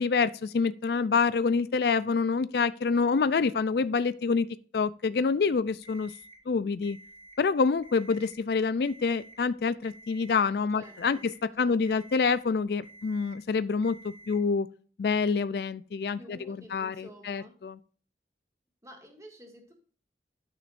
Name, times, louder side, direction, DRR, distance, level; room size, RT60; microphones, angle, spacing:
voice 1, 0.0-4.5 4.7-6.1 6.5-7.0 7.4-14.7 15.0-17.8, left 5 dB, 65° left, 0.4 m, -27 dB
Alarm, 5.8-6.4 6.8-7.4 7.8-8.4 8.8-9.4 9.8-10.4 10.8-11.4 11.8-12.4 12.8-13.4 13.8-14.4, right 2 dB, 40° right, 2.3 m, -52 dB
voice 2, 10.7-11.3 11.6-12.0 16.2-17.5 18.8-19.7, equal, 20° right, 2.0 m, -50 dB
12.0 x 6.2 x 2.5 m
head